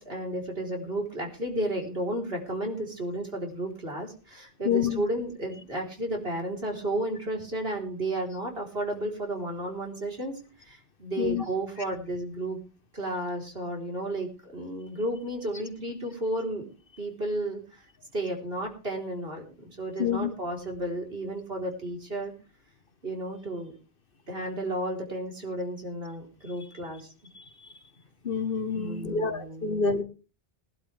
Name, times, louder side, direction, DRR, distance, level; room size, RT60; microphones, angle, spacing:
voice 1, 0.0-12.6 12.9-16.7 17.0-17.6 18.1-22.3 23.0-23.8 24.3-27.1 28.7-29.9, right 1 dB, 60° right, 1 dB, 4.3 m, -33 dB
voice 2, 4.6-5.0 11.2-11.4 20.0-20.3 27.3-27.4 28.2-30.0, left 6 dB, 55° left, 10 dB, 1.4 m, -27 dB
21.0 x 12.0 x 3.4 m, 0.33 s
omnidirectional pair, 1.1 m